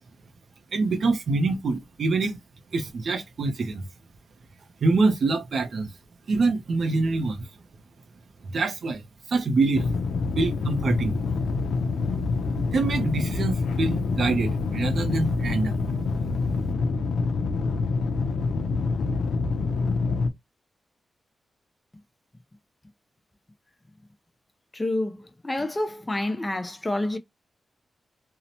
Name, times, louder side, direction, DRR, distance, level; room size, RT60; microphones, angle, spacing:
voice 1, 0.7-2.4 2.7-3.8 4.8-5.9 6.3-7.5 8.4-9.9 10.4-11.2 12.4-15.8, right 3 dB, 50° right, 0.4 m, -25 dB
sound 1, 9.7-20.3, left 4 dB, 85° left, 0.5 m, -26 dB
voice 2, 24.7-27.2, left 1 dB, 15° left, 0.4 m, -28 dB
2.7 x 2.0 x 2.7 m
wide cardioid pair, 175°, 0 cm